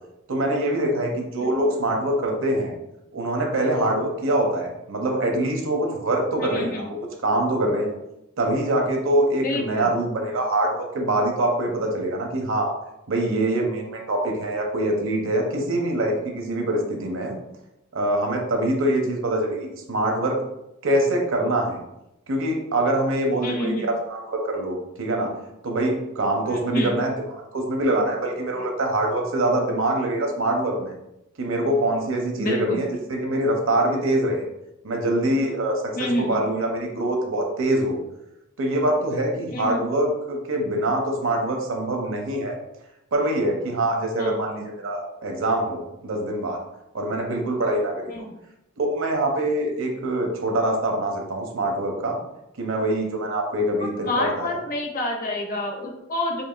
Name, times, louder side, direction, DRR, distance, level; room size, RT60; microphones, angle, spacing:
voice 1, 0.3-2.7 3.1-7.9 8.4-12.7 13.1-17.4 17.9-20.4 20.8-21.8 22.3-25.3 25.6-27.2 27.5-30.9 31.4-34.5 34.8-38.0 38.6-42.6 43.1-46.6 46.9-48.0 48.8-52.2 52.6-54.6, right 1 dB, 65° right, 2 dB, 0.7 m, -24 dB
voice 2, 6.4-6.9 9.4-9.9 23.4-23.9 26.5-27.0 32.4-32.8 36.0-36.5 39.5-39.8 44.2-44.4 48.1-48.3 53.8-56.4, left 1 dB, 40° left, 1 dB, 0.6 m, -28 dB
4.6 x 2.8 x 2.4 m, 0.90 s
head